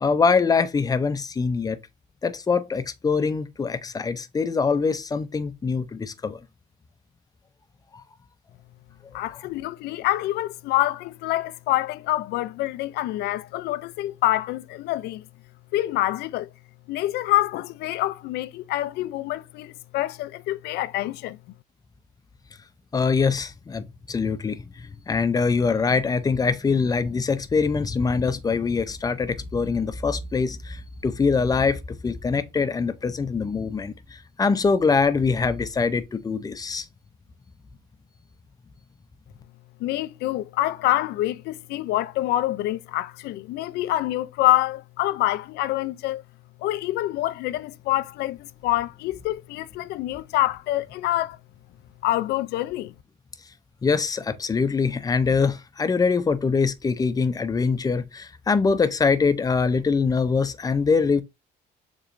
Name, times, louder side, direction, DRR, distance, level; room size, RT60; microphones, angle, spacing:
voice 1, 0.0-1.8 2.2-6.4 7.9-8.0 22.9-36.9 53.8-61.2, left 5 dB, 20° left, 0.5 m, -23 dB
voice 2, 9.1-15.2 15.7-16.5 16.9-21.4 39.8-46.2 46.6-51.4 52.0-52.9, left 15 dB, 75° left, 0.4 m, -26 dB
6.7 x 3.1 x 2.5 m
cardioid pair, 110°, 17 cm